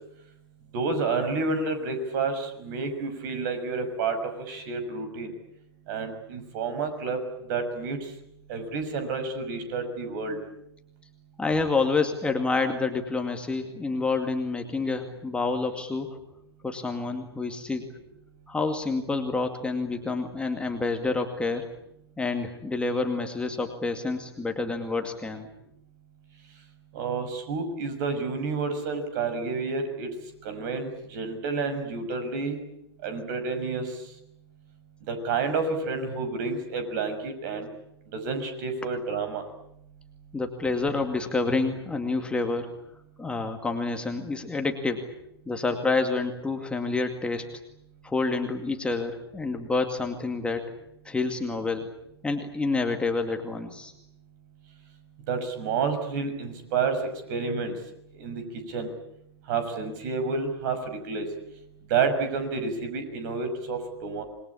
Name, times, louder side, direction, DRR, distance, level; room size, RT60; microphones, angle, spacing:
voice 1, 0.7-5.3 5.9-7.2 7.5-8.0 8.5-10.4 26.9-30.1 30.4-32.6 33.0-33.9 35.1-37.7 38.1-39.4 55.3-57.0 57.3-57.7 58.2-58.4 58.7-58.9 59.5-60.8 61.0-61.3 61.9-64.2, right 4 dB, 45° right, 9 dB, 6.2 m, -29 dB
voice 2, 11.4-16.2 16.6-17.9 18.5-21.7 22.2-25.5 40.3-42.7 43.2-45.1 45.5-47.5 48.0-50.7 51.0-51.9 52.2-53.9, left 3 dB, 5° left, 4 dB, 2.2 m, -28 dB
27.0 x 21.0 x 8.6 m, 0.77 s
figure-of-eight pair, 110°, 14 cm